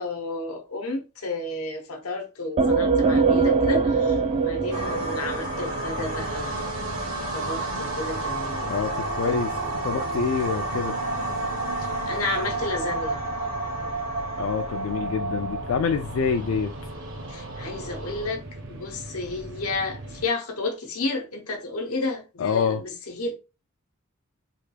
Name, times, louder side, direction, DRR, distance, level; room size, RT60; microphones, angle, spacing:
voice 1, 0.0-6.7 7.3-9.3 12.1-13.2 17.3-23.4, left 3 dB, 90° left, 0.8 m, -32 dB
sound 1, 2.6-6.2, right 4 dB, 30° right, 0.3 m, -22 dB
sound 2, 3.0-20.3, right 2 dB, 60° right, 0.6 m, -40 dB
sound 3, 4.7-18.3, right 2 dB, 80° right, 1.4 m, -31 dB
voice 2, 8.6-9.5 9.8-11.0 14.4-16.7 22.4-22.8, left 6 dB, 70° left, 0.3 m, -26 dB
3.4 x 2.2 x 3.3 m
head